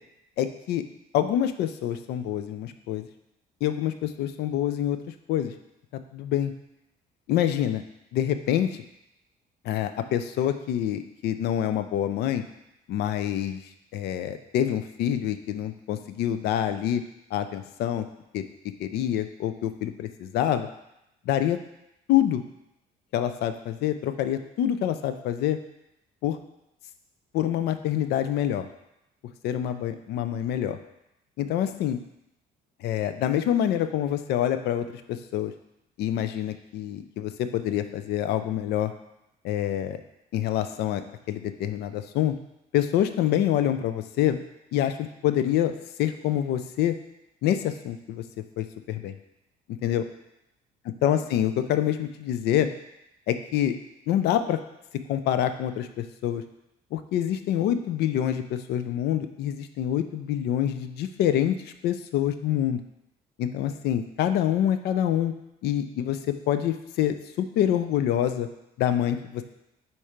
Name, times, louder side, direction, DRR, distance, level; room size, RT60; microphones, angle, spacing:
voice 1, 0.4-0.8 1.1-3.0 3.6-5.0 5.3-5.5 6.1-6.5 7.3-7.8 8.1-8.7 9.6-12.4 12.9-13.6 13.9-17.0 17.3-18.1 18.3-18.4 18.8-20.7 21.3-21.6 22.1-22.4 23.1-25.6 26.2-26.4 27.3-28.7 29.4-30.8 31.4-32.0 32.8-35.5 36.0-38.9 39.4-40.0 40.3-41.0 41.3-42.3 42.7-44.4 44.7-44.9 45.2-45.7 46.0-46.9 47.4-48.2 48.6-49.2 49.8-50.0 51.0-52.7 53.3-53.7 54.1-54.6 55.1-56.4 56.9-61.6 61.8-62.8 63.4-65.3 65.6-68.5 68.8-69.4, left 11 dB, 75° left, 10 dB, 0.5 m, -26 dB
4.5 x 4.2 x 5.0 m, 0.84 s
cardioid pair, 110°, 17 cm